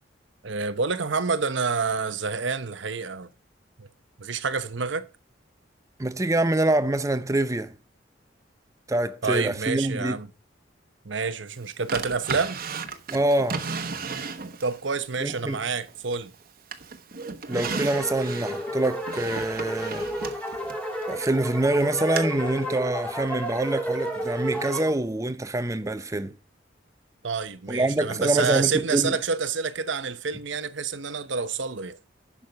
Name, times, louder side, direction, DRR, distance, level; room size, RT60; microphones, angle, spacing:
voice 1, 0.4-3.3 3.8-3.9 4.2-5.1 9.2-10.3 11.0-12.6 14.6-16.3 27.2-32.0, right 5 dB, 70° right, 0.9 m, -28 dB
voice 2, 6.0-7.7 8.9-10.2 13.1-13.7 15.2-15.6 17.5-20.1 21.1-26.3 27.7-29.2, right 2 dB, 15° right, 0.7 m, -25 dB
Drawer open or close, 11.9-14.8 15.3-16.3 16.7-21.4 22.2-22.3, right 5 dB, 50° right, 1.1 m, -34 dB
sound 1, 17.5-24.9, equal, 5° left, 1.9 m, -32 dB
10.5 x 6.3 x 5.2 m
head